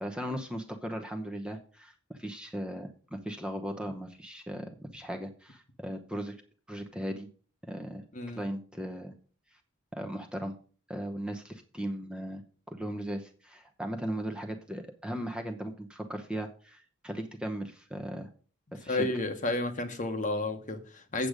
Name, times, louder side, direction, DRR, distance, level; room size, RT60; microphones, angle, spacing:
voice 1, 0.0-6.4 6.7-7.3 7.7-8.0 8.3-9.1 9.9-10.5 10.9-12.4 12.7-18.3 18.7-19.1, equal, 5° right, 0.9 m, -37 dB
voice 2, 18.9-21.3, left 2 dB, 40° left, 1.1 m, -31 dB
8.2 x 7.8 x 5.1 m
head